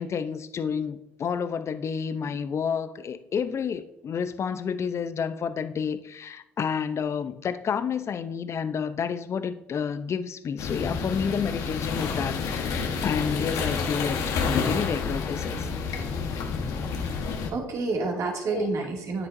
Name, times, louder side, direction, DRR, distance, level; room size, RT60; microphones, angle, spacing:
voice 1, 0.0-15.7 18.5-18.7, left 6 dB, 45° left, 12 dB, 0.7 m, -30 dB
sound 1, 10.6-17.5, left 5 dB, 65° left, 1.3 m, -29 dB
voice 2, 17.5-19.3, right 3 dB, 55° right, 0 dB, 2.5 m, -29 dB
9.6 x 8.7 x 2.7 m, 0.87 s
hypercardioid pair, 60°, 6 cm